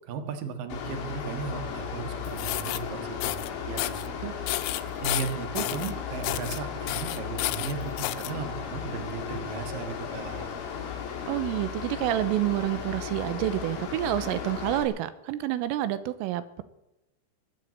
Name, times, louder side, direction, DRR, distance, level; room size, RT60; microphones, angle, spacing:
voice 1, 0.1-10.6, right 6 dB, 60° right, 7 dB, 2.6 m, -36 dB
Mechanical fan, 0.7-14.8, left 7 dB, 55° left, 3.8 m, -36 dB
sound 1, 2.2-2.8 3.2-3.5 3.8-4.1 4.5-5.9 6.2-6.6 6.9-8.3, left 17 dB, 80° left, 3.2 m, -31 dB
voice 2, 11.3-16.6, right 14 dB, 90° right, 13 dB, 3.5 m, -28 dB
21.5 x 8.0 x 8.3 m, 0.94 s
omnidirectional pair, 5.9 m